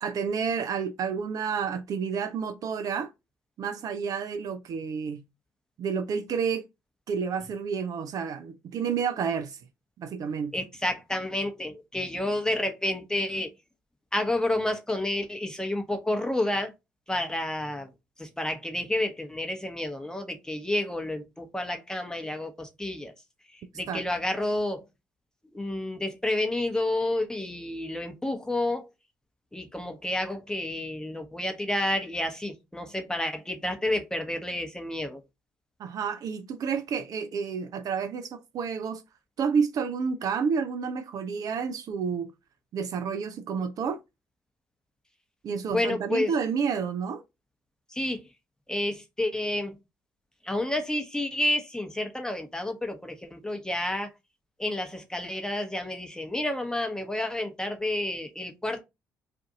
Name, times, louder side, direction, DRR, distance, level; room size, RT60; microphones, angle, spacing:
voice 1, 0.0-3.1 3.6-5.2 5.8-6.7 7.1-9.6 10.0-10.5 23.9-24.0 35.8-39.0 39.4-42.3 42.7-44.0 45.4-47.2, right 6 dB, 55° right, 0.4 m, -30 dB
voice 2, 10.5-13.5 14.1-16.7 17.1-17.9 18.2-23.1 23.5-24.9 25.5-28.9 29.5-35.2 45.7-46.3 47.9-48.2 48.7-49.8 50.4-54.1 54.6-58.8, left 1 dB, 10° left, 0.9 m, -30 dB
2.5 x 2.5 x 3.8 m
hypercardioid pair, 50°, 7 cm